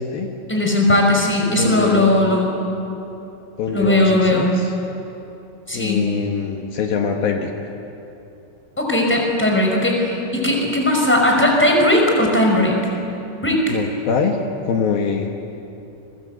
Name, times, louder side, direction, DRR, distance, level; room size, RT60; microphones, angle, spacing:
voice 1, 0.5-2.5 3.7-4.5 5.7-6.0 8.8-12.8 13.4-13.7, left 1 dB, 5° left, 0 dB, 5.0 m, -17 dB
voice 2, 1.5-2.1 3.6-4.7 5.7-7.5 13.7-14.4 14.7-15.3, left 6 dB, 70° left, 2 dB, 3.1 m, -23 dB
30.0 x 24.0 x 8.1 m, 2.9 s
omnidirectional pair, 4.5 m